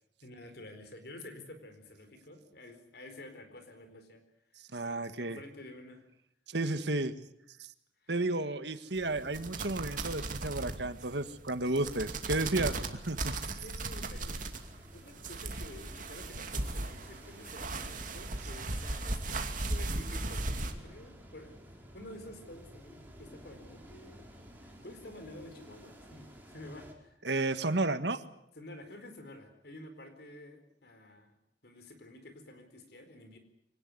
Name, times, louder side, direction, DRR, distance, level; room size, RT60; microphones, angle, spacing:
voice 1, 0.2-4.2 4.5-6.0 8.0-8.5 13.4-21.6 21.9-24.2 24.6-27.2 28.5-31.4 31.6-33.4, left 1 dB, 60° left, 8 dB, 4.4 m, -50 dB
voice 2, 4.7-5.4 6.5-7.1 7.6-7.7 8.1-13.3 27.2-28.2, right 2 dB, 70° right, 11 dB, 1.7 m, -32 dB
sound 1, 8.9-20.7, right 2 dB, 50° right, 2.5 m, -37 dB
sound 2, 14.5-26.9, equal, 10° right, 4.5 m, -53 dB
24.5 x 18.5 x 9.7 m, 0.79 s
head